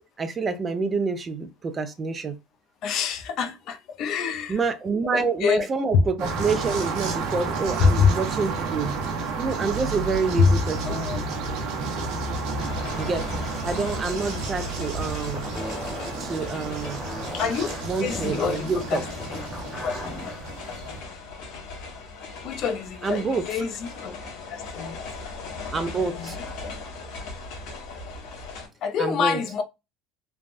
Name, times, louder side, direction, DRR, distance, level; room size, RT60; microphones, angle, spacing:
voice 1, 0.2-2.4 4.5-8.9 9.4-11.0 13.0-15.5 16.2-17.0 17.9-19.0 23.0-23.5 25.7-26.4 29.0-29.4, right 4 dB, 20° right, 0.3 m, -27 dB
voice 2, 2.8-4.6 5.1-5.7 5.9-6.0 7.8-8.1 10.4-10.6 10.8-11.2 13.7-13.8 17.3-17.7 18.0-19.4 19.8-20.0 22.4-24.2 24.5-25.0 26.0-26.8 28.8-29.6, left 5 dB, 50° left, 0.5 m, -25 dB
sound 1, 6.2-21.0, right 4 dB, 60° right, 0.9 m, -31 dB
sound 2, 12.6-28.7, left 3 dB, 70° left, 1.1 m, -38 dB
sound 3, 15.3-20.5, left 1 dB, 10° left, 0.7 m, -38 dB
3.2 x 2.1 x 2.5 m
cardioid pair, 150°, 0 cm